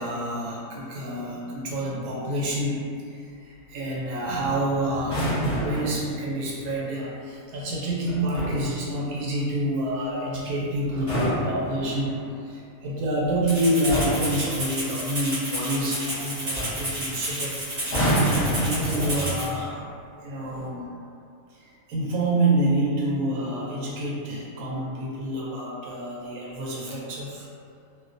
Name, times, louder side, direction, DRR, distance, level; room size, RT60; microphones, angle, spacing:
voice 1, 0.0-17.6 18.1-19.8 20.2-20.9 21.6-27.5, right 1 dB, 90° right, -5 dB, 1.0 m, -28 dB
sound 1, 5.0-6.0 8.1-8.7 10.8-12.2 13.2-13.5 13.9-14.4 16.1-16.2 16.5-16.9 17.8-19.5 20.4-20.7, equal, 35° left, 0.6 m, -27 dB
Rattle (instrument), 13.5-19.5, right 1 dB, 45° right, 0.8 m, -31 dB
2.5 x 2.1 x 2.5 m, 2.4 s
omnidirectional pair, 1.5 m